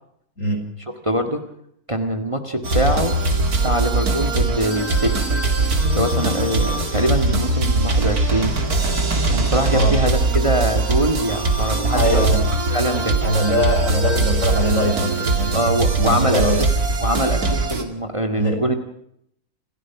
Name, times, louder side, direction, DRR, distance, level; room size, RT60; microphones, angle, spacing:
voice 1, 1.0-1.4 1.9-3.1 3.6-5.2 5.9-8.6 9.3-12.3 12.7-13.1 15.5-16.7 17.0-18.8, right 1 dB, 20° right, 6 dB, 1.9 m, -23 dB
sound 1, 2.6-17.8, right 3 dB, 80° right, 2.9 m, -21 dB
voice 2, 11.9-12.4 13.2-15.6 16.0-16.6 18.4-18.6, equal, 55° left, 3 dB, 5.9 m, -21 dB
28.5 x 15.0 x 6.0 m, 0.72 s
omnidirectional pair, 1.6 m